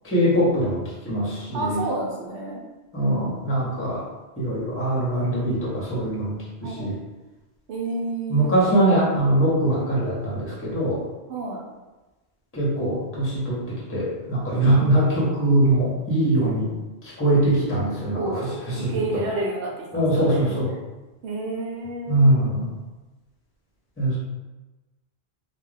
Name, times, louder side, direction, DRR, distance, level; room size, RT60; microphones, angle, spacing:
voice 1, 0.0-0.8 1.0-1.8 2.9-4.0 4.4-6.9 8.3-11.0 12.5-16.7 17.2-18.2 18.7-18.9 19.9-20.7 22.1-22.7 24.0-24.2, right 1 dB, 15° left, -6 dB, 0.7 m, -22 dB
voice 2, 1.5-2.6 6.6-6.9 7.7-8.8 11.3-11.6 14.6-15.0 18.1-20.5 21.2-22.3, right 2 dB, 85° right, -2 dB, 0.9 m, -30 dB
2.4 x 2.2 x 3.3 m, 1.1 s
omnidirectional pair, 1.1 m